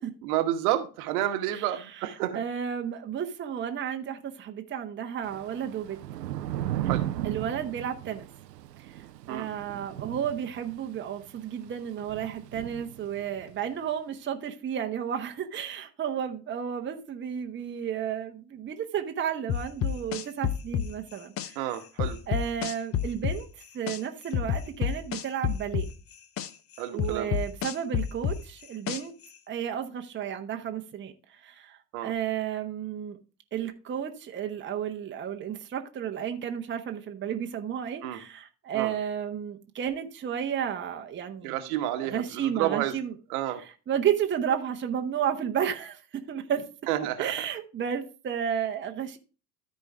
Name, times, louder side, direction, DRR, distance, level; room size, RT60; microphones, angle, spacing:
voice 1, 0.2-2.4 6.8-7.1 9.3-9.5 21.5-22.2 26.8-27.3 31.9-32.1 38.0-38.2 38.7-38.9 41.4-42.9 43.3-43.6 46.9-47.5, right 13 dB, 60° right, 1.3 m, -30 dB
voice 2, 1.5-6.0 7.2-8.3 8.8-21.6 22.3-23.5 23.7-25.9 26.9-29.1 29.5-33.2 33.5-41.5 42.0-43.1 43.9-46.7 47.2-49.2, right 9 dB, 25° right, 1.0 m, -32 dB
Thunder / Rain, 5.2-13.6, right 13 dB, 80° right, 0.7 m, -36 dB
sound 1, 19.5-21.5 22.0-24.0 24.3-26.5 27.0-29.2, left 9 dB, 30° left, 0.7 m, -28 dB
13.5 x 4.5 x 3.4 m
figure-of-eight pair, 75°, 49 cm